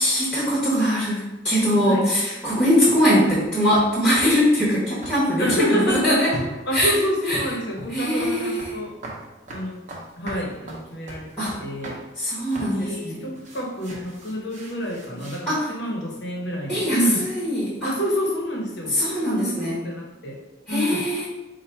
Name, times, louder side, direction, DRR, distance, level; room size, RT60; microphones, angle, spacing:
voice 1, 0.0-6.3 6.7-6.9 7.3-7.4 7.9-8.7 11.4-11.5 12.2-13.2 15.5-15.6 16.7-17.9 18.9-19.8 20.7-21.3, equal, 5° left, -10 dB, 1.1 m, -21 dB
sound 1, 2.3-3.0 3.3-3.5 3.7-4.3 4.6-4.7 5.0-5.2 5.4-6.1 6.3-7.0 7.3-8.7 9.0-9.2 9.5-12.0 12.5-12.7 13.3-15.4, right 1 dB, 40° right, 0.8 m, -38 dB
voice 2, 5.4-8.9 9.5-9.8 10.2-12.0 12.6-17.3 17.8-20.4 20.7-21.1, equal, 60° left, -1 dB, 1.1 m, -28 dB
4.5 x 2.4 x 4.4 m, 1.1 s
head